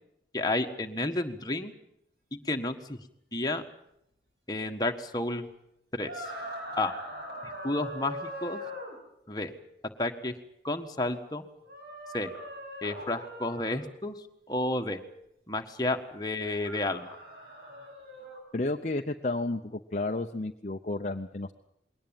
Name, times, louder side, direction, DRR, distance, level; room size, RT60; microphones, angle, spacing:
voice 1, 0.3-1.7 2.3-3.0 3.3-3.6 4.5-5.5 5.9-6.3 6.8-6.9 7.6-8.6 9.3-9.5 10.0-10.3 10.6-11.4 12.1-12.3 12.8-14.1 14.5-15.0 15.5-17.1, left 2 dB, 20° left, 5 dB, 1.5 m, -31 dB
sound 1, 6.0-9.0 11.6-13.8 16.4-18.4, equal, 65° right, 6.0 m, -41 dB
voice 2, 18.5-21.5, left 2 dB, 40° left, 5 dB, 0.8 m, -32 dB
21.5 x 18.5 x 9.0 m, 0.78 s
head